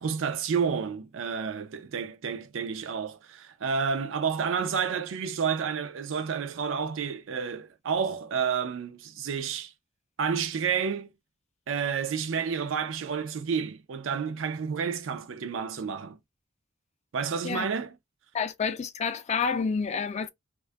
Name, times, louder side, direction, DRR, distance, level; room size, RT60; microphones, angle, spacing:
voice 1, 0.0-9.7 10.2-11.1 11.7-16.2 17.1-17.9, right 6 dB, 75° right, 0.4 m, -30 dB
voice 2, 18.3-20.3, left 5 dB, 35° left, 0.3 m, -29 dB
2.5 x 2.3 x 2.2 m
head